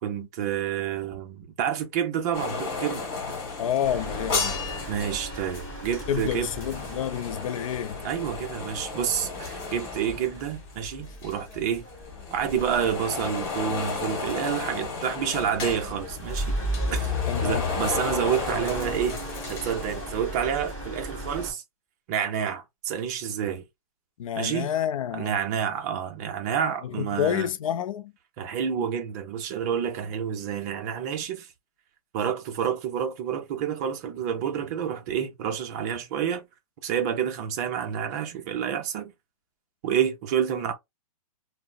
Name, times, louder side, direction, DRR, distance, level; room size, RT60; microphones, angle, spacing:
voice 1, 0.0-3.1 4.9-6.5 8.0-11.8 12.3-16.6 16.9-17.1 17.4-19.2 19.4-21.6 22.1-23.6 24.4-24.7 25.1-27.5 28.4-31.5 32.1-36.5 36.8-39.1 39.8-40.7, right 8 dB, 25° right, 0.5 m, -29 dB
sound 1, 2.3-11.0 11.2-20.4 20.7-20.8, left 4 dB, 40° left, 1.2 m, -34 dB
voice 2, 3.6-4.6 6.1-8.0 17.3-17.7 24.2-25.4 26.8-28.1, left 10 dB, 60° left, 0.4 m, -29 dB
sound 2, 3.8-21.5, left 1 dB, 15° left, 1.7 m, -36 dB
3.5 x 2.0 x 2.3 m
hypercardioid pair, 165°, 19 cm